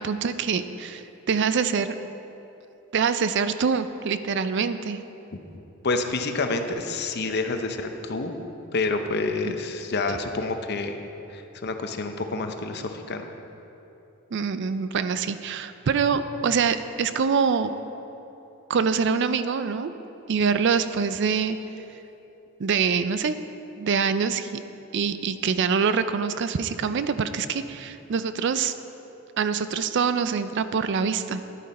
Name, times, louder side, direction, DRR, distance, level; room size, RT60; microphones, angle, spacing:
voice 1, 0.0-2.0 2.9-5.0 14.3-17.7 18.7-19.9 20.3-21.6 22.6-23.4 23.8-24.6 24.9-28.7 29.4-31.4, right 6 dB, 60° right, 11 dB, 0.4 m, -25 dB
voice 2, 5.8-8.4 8.7-11.1 11.3-13.3, left 3 dB, 55° left, 6 dB, 0.7 m, -28 dB
11.0 x 9.2 x 4.2 m, 3.0 s
head